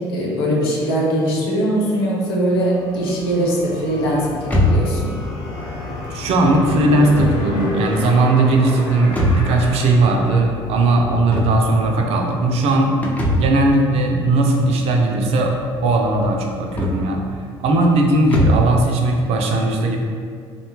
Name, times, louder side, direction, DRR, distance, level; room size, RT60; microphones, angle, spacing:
voice 1, 0.0-5.2, right 1 dB, 80° left, -3 dB, 0.6 m, -21 dB
sound 1, 2.2-11.6, left 4 dB, 60° left, 1.1 m, -36 dB
sound 2, 4.4-18.8, equal, 10° left, 0.5 m, -25 dB
sound 3, 5.2-10.7 11.1-11.2, equal, 35° left, 1.0 m, -31 dB
voice 2, 6.1-15.6 15.8-17.2 17.6-20.0, right 2 dB, 55° right, 1 dB, 0.4 m, -18 dB
2.6 x 2.1 x 2.9 m, 2.1 s
hypercardioid pair, 60°, 13 cm